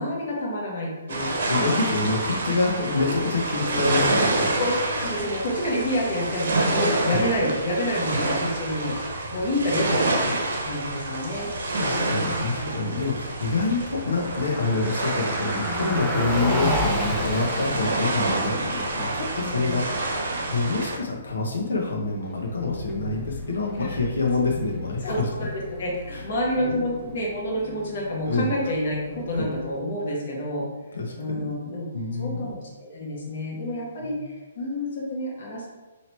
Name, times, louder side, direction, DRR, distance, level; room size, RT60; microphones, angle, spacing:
voice 1, 0.0-1.3 2.7-2.9 4.6-9.0 9.3-11.5 11.9-12.7 19.4-19.8 23.8-24.1 24.5-24.6 25.0-30.7 31.2-31.9 32.2-35.7, equal, 40° left, -3 dB, 1.0 m, -29 dB
sound 1, 1.1-21.0, right 2 dB, 60° right, 0.9 m, -28 dB
voice 2, 1.2-4.5 11.8-20.1 20.5-25.5 26.1-26.2 26.6-26.8 28.3-28.5 29.3-29.5 30.9-31.5 31.9-32.6 34.0-34.2, left 3 dB, 90° left, -1 dB, 0.8 m, -27 dB
Car passing by, 13.7-29.8, left 1 dB, ahead, 0.4 m, -34 dB
2.9 x 2.8 x 4.4 m, 1.2 s
hypercardioid pair, 175°, 0 cm